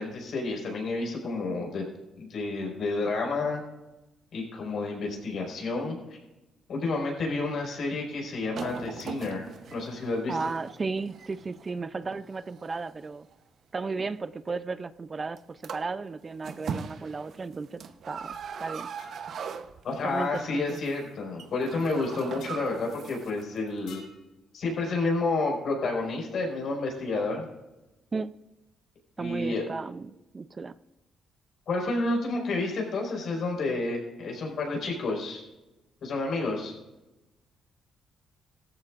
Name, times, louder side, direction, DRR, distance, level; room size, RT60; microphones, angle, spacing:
voice 1, 0.0-1.8 2.2-3.6 4.3-6.2 6.7-10.4 19.8-24.0 24.5-27.4 29.2-29.6 31.7-35.4 36.0-36.7, left 3 dB, 65° left, -1 dB, 4.9 m, -30 dB
sound 1, 8.5-13.3 14.0-14.2 15.4-15.5 15.6-16.0 16.3-20.2 20.5-20.9 21.2-23.4 23.7-23.8, right 6 dB, 60° right, 0.8 m, -40 dB
voice 2, 10.3-13.3 13.7-18.9 20.0-20.8 28.1-28.4 29.2-30.7, right 4 dB, 30° right, 14 dB, 0.4 m, -34 dB
sound 2, 19.0-19.2 20.3-20.5 22.4-22.6 23.9-24.2, left 6 dB, 80° left, 1.8 m, -50 dB
17.0 x 14.0 x 2.5 m, 1.0 s
cardioid pair, 90°, 0 cm